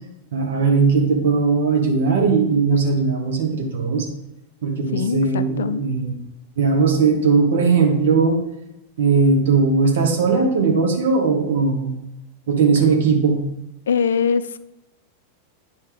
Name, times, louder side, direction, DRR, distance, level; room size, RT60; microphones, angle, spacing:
voice 1, 0.3-4.1 4.6-6.1 6.6-8.4 9.0-12.0 12.5-13.4, right 4 dB, 60° right, 1 dB, 1.6 m, -18 dB
voice 2, 4.9-5.8 13.9-14.6, left 6 dB, 65° left, 13 dB, 0.3 m, -22 dB
10.0 x 5.3 x 3.6 m, 0.87 s
figure-of-eight pair, 90°, 0 cm